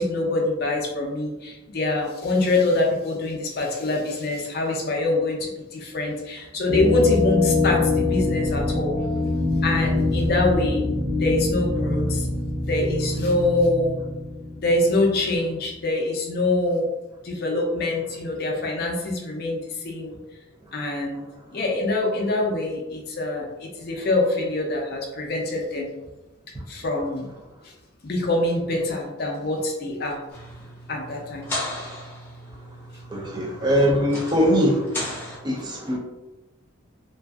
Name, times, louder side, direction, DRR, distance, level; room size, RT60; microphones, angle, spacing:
voice 1, 0.0-8.9 9.6-10.8 11.2-12.3 12.6-14.0 14.6-16.9 17.2-20.2 20.7-21.2 21.5-25.9 26.7-27.3 28.0-30.2 30.9-31.5, left 2 dB, 50° left, 0 dB, 0.5 m, -24 dB
sound 1, 6.7-15.4, left 2 dB, 60° right, 1.2 m, -24 dB
sound 2, 30.3-35.4, left 1 dB, 10° left, 0.7 m, -36 dB
voice 2, 33.1-35.0 35.4-36.0, equal, 20° right, -2 dB, 0.4 m, -21 dB
2.5 x 2.3 x 2.3 m, 1.0 s
head